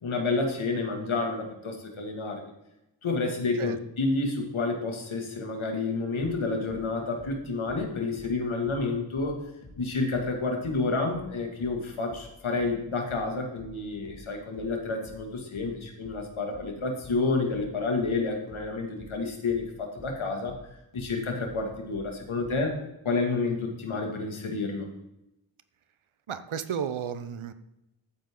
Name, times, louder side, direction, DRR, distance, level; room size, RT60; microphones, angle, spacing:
voice 1, 0.0-2.4 3.0-9.4 9.8-20.6 20.9-22.8 23.0-24.9, left 3 dB, 80° left, 2 dB, 2.4 m, -29 dB
sound 1, 6.2-9.4 9.6-22.7, left 2 dB, 65° left, 3.0 m, -49 dB
voice 2, 26.3-27.5, right 8 dB, 85° right, 12 dB, 0.9 m, -33 dB
12.5 x 9.6 x 3.9 m, 0.89 s
wide cardioid pair, 115°, 47 cm